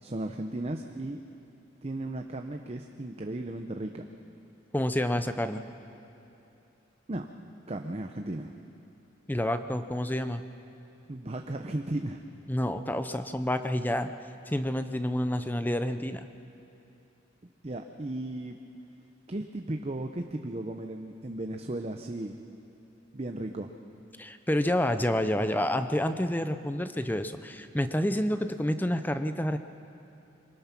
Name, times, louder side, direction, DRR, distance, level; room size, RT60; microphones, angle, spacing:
voice 1, 0.0-1.2 1.8-4.1 7.1-7.3 7.7-8.5 11.1-12.2 17.6-18.6 19.3-22.4 23.1-23.7, right 1 dB, 35° right, 4 dB, 0.7 m, -35 dB
voice 2, 4.7-5.6 9.3-10.4 12.5-14.1 14.5-16.3 24.2-29.6, left 1 dB, 10° left, 10 dB, 0.6 m, -29 dB
24.0 x 20.0 x 6.0 m, 3.0 s
head